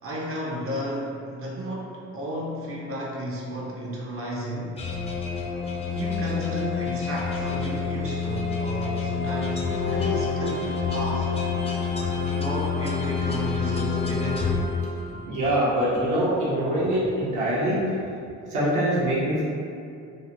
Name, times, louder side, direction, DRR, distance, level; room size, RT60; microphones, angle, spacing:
voice 1, 0.0-4.8 5.9-11.3 12.2-14.6, equal, 50° right, -4 dB, 0.5 m, -33 dB
sound 1, 4.8-15.4, left 5 dB, 20° left, 0.3 m, -27 dB
voice 2, 15.2-18.1 18.5-19.4, right 1 dB, 85° right, -8 dB, 0.8 m, -24 dB
2.8 x 2.0 x 2.8 m, 2.5 s
cardioid pair, 90°, 30 cm